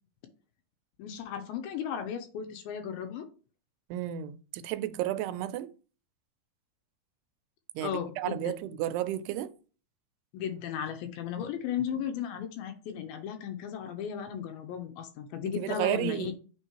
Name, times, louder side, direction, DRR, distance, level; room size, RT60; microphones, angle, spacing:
voice 1, 1.0-3.3 7.8-8.5 10.3-16.4, left 8 dB, 80° left, 2.3 m, -35 dB
voice 2, 3.9-5.7 7.8-9.5 15.6-16.4, right 13 dB, 90° right, 2.6 m, -32 dB
9.1 x 3.6 x 2.9 m
omnidirectional pair, 4.5 m